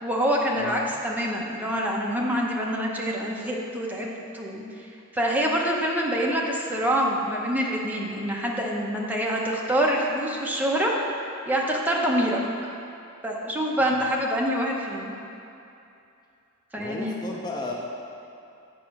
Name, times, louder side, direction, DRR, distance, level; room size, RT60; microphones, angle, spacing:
voice 1, 0.0-4.1 4.3-4.6 5.1-10.9 11.5-12.4 13.2-15.1 16.7-17.2, equal, 10° right, -2 dB, 0.9 m, -26 dB
voice 2, 0.6-0.9 13.8-14.1 16.7-17.7, left 2 dB, 20° left, -2 dB, 0.7 m, -35 dB
8.5 x 5.7 x 6.0 m, 2.7 s
head